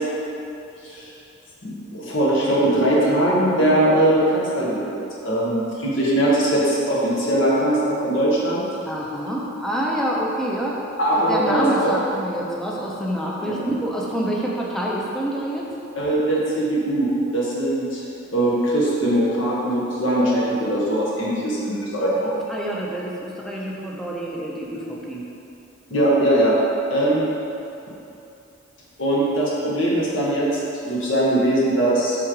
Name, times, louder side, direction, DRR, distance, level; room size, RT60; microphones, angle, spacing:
voice 1, 1.6-8.6 11.0-11.9 13.4-13.6 16.0-18.0 18.3-22.3 25.9-26.5 26.9-27.3 29.0-30.5 30.8-32.2, right 1 dB, 65° left, -5 dB, 0.9 m, -21 dB
voice 2, 8.8-10.8 11.3-15.7 22.2-25.2, equal, ahead, -4 dB, 0.4 m, -27 dB
3.6 x 3.0 x 4.7 m, 2.7 s
head